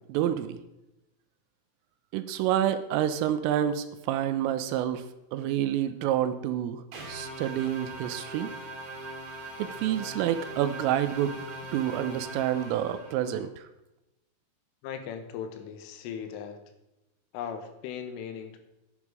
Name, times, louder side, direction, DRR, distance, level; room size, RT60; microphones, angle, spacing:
voice 1, 0.1-0.6 2.1-5.1 5.3-8.5 9.6-11.4 11.7-13.6, right 11 dB, 85° right, 12 dB, 3.3 m, -28 dB
sound 1, 6.9-13.4, right 2 dB, 55° right, 4.8 m, -41 dB
voice 2, 14.8-16.6 17.3-18.6, left 8 dB, 80° left, 8 dB, 3.5 m, -38 dB
11.0 x 10.0 x 4.8 m, 0.94 s
omnidirectional pair, 5.8 m